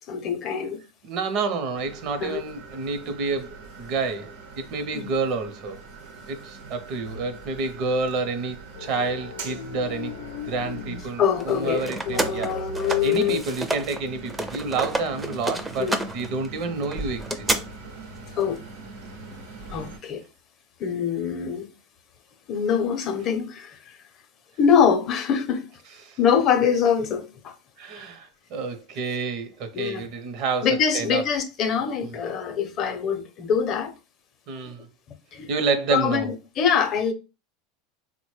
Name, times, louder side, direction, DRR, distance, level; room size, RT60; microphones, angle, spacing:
voice 1, 0.1-0.8 2.2-2.4 4.9-5.1 11.2-13.4 15.8-16.0 18.4-18.6 19.7-20.2 20.8-21.7 22.5-23.8 24.6-25.6 26.2-27.5 29.7-30.1 30.6-33.9 35.3-35.5 35.9-37.1, left 7 dB, 45° left, 0.6 m, -24 dB
voice 2, 1.0-5.8 6.3-10.2 10.5-12.5 13.0-17.3 26.0-26.2 27.8-30.7 30.9-31.2 32.0-32.2 34.5-34.9 35.5-36.3, right 4 dB, 55° right, 0.6 m, -29 dB
sound 1, 1.7-20.0, right 3 dB, 85° right, 0.8 m, -42 dB
sound 2, 7.0-7.3 8.7-11.2 12.0-13.4, left 4 dB, 90° left, 0.4 m, -36 dB
sound 3, 11.4-14.0 14.3-17.6, right 1 dB, 10° right, 0.4 m, -29 dB
3.7 x 2.1 x 3.1 m
supercardioid pair, 125°, 0 cm